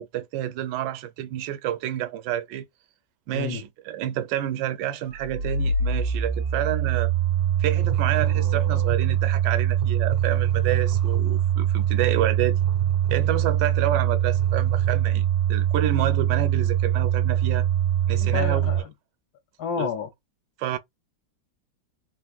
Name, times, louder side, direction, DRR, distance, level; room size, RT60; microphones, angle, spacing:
voice 1, 0.0-2.7 3.3-7.1 7.6-12.6 13.1-17.7 18.1-18.7 19.8-19.9 20.6-20.8, right 12 dB, 75° right, 1.2 m, -29 dB
sound 1, 5.2-18.8, right 10 dB, 60° right, 0.8 m, -23 dB
voice 2, 18.2-18.9 19.6-20.1, left 7 dB, 70° left, 1.0 m, -30 dB
3.5 x 2.4 x 2.3 m
omnidirectional pair, 2.0 m